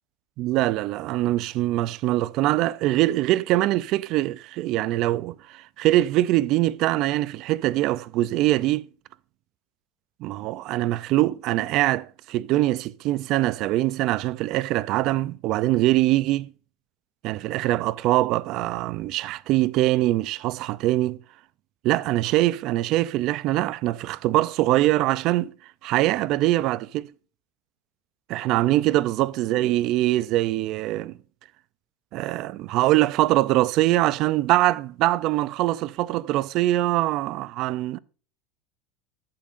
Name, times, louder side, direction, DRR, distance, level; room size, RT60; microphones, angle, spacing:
voice 1, 0.4-8.9 10.2-16.5 17.2-21.2 21.8-25.5 25.8-27.1 28.3-31.2 32.1-38.0, right 16 dB, 50° right, 0.4 m, -23 dB
13.5 x 8.6 x 2.5 m
supercardioid pair, 150°, 0 cm